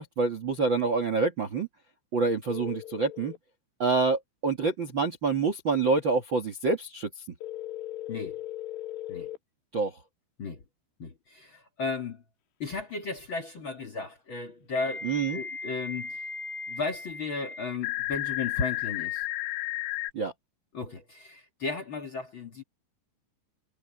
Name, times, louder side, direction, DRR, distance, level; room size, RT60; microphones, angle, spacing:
voice 1, 0.0-1.7 2.1-3.3 3.8-7.1 9.7-9.9 15.0-15.4 20.1-20.3, right 4 dB, 80° right, 1.0 m, -27 dB
sound 1, 2.5-3.4 7.4-9.4 12.0-12.1 14.8-20.1, left 11 dB, 90° left, 4.1 m, -35 dB
voice 2, 8.1-8.4 9.1-9.3 10.4-10.6 11.0-12.2 12.6-16.2 16.7-19.2 20.7-22.6, left 4 dB, 60° left, 1.3 m, -35 dB
omnidirectional pair, 5.4 m